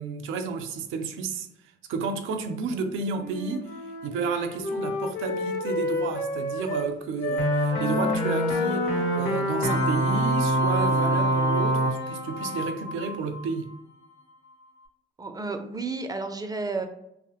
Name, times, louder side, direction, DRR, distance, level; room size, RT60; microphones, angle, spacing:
voice 1, 0.0-1.5 1.9-3.7 4.0-13.7, right 5 dB, 90° right, 0.4 m, -31 dB
Wind instrument woodwind instrument, 3.1-6.9 7.2-11.3, left 2 dB, 55° left, 0.6 m, -31 dB
sound 1, 7.4-13.5, right 1 dB, 85° left, 0.9 m, -26 dB
voice 2, 15.2-16.8, right 3 dB, 20° right, 0.4 m, -31 dB
3.0 x 2.0 x 2.9 m
cardioid pair, 90°, 20 cm